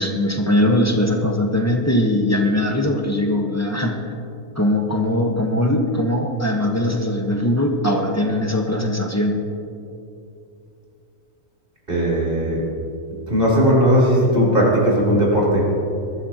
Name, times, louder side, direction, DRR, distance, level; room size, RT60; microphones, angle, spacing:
voice 1, 0.0-4.0 4.6-9.4, left 1 dB, 15° left, 2 dB, 1.2 m, -20 dB
voice 2, 11.9-12.6 13.3-15.6, equal, 45° right, -5 dB, 4.0 m, -17 dB
21.5 x 13.0 x 3.0 m, 2.7 s
omnidirectional pair, 1.3 m